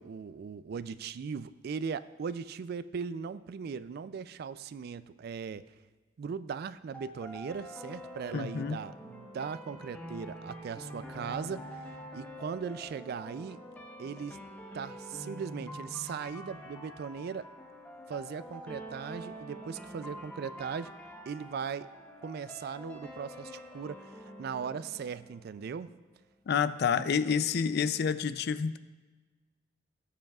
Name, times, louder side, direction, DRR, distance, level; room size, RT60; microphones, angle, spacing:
voice 1, 0.0-5.6 6.2-11.8 12.1-13.6 14.0-14.4 14.7-17.5 18.1-20.9 21.3-21.9 22.2-25.9 27.0-27.5, right 6 dB, 55° right, 15 dB, 0.3 m, -39 dB
sound 1, 6.9-25.9, equal, 10° left, 1.0 m, -46 dB
voice 2, 8.3-8.8 26.5-28.8, left 6 dB, 55° left, 14 dB, 0.4 m, -28 dB
16.5 x 7.7 x 2.3 m, 1.3 s
head